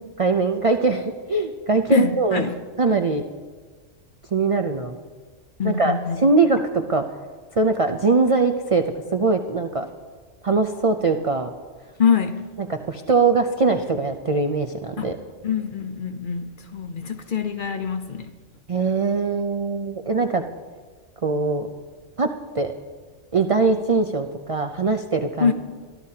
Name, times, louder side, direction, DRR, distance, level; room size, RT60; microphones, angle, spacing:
voice 1, 0.2-2.4 2.8-3.2 4.3-5.0 5.6-5.9 6.2-7.0 7.5-8.8 9.1-9.9 10.4-11.5 12.7-15.2 18.7-20.4 21.2-21.7 22.2-22.3 22.5-22.7 23.3-25.5, right 3 dB, 45° right, 6 dB, 0.4 m, -21 dB
voice 2, 1.9-2.6 5.6-6.2 12.0-12.4 15.0-15.1 15.4-18.3 25.4-25.5, left 6 dB, 45° left, 7 dB, 0.8 m, -24 dB
23.0 x 13.5 x 2.8 m, 1.5 s
omnidirectional pair, 1.3 m